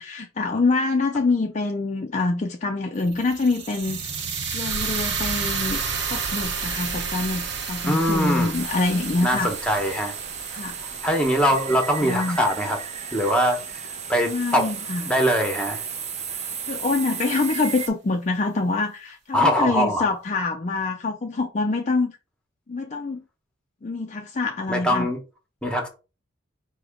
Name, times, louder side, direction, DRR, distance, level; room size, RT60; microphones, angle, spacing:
voice 1, 0.0-4.0 4.5-5.8 6.1-9.5 10.5-10.8 12.0-12.4 14.3-15.1 16.3-22.1 22.7-23.2 23.8-25.1, left 3 dB, 35° left, 0.4 m, -25 dB
sound 1, 3.0-13.1, right 5 dB, 55° right, 0.9 m, -31 dB
voice 2, 7.8-8.5 9.2-10.1 10.8-12.8 13.1-13.8 14.1-14.7 15.0-15.8 19.3-20.0 24.7-25.2 25.6-25.9, equal, 5° left, 0.9 m, -22 dB
sound 2, 8.5-17.9, right 6 dB, 30° right, 0.5 m, -34 dB
4.9 x 2.9 x 3.5 m
head